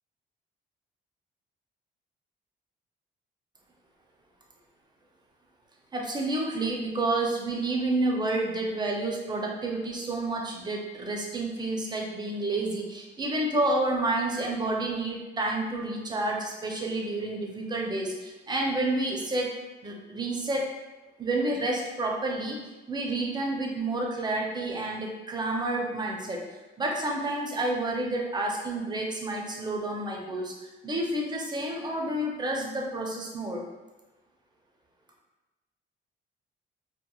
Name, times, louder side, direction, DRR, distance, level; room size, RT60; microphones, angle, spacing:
voice 1, 5.9-19.6 19.8-20.7 21.2-22.6 22.9-26.5 26.8-33.6, right 2 dB, 20° right, 0 dB, 0.5 m, -29 dB
2.9 x 2.1 x 2.3 m, 1.1 s
cardioid pair, 90°, 20 cm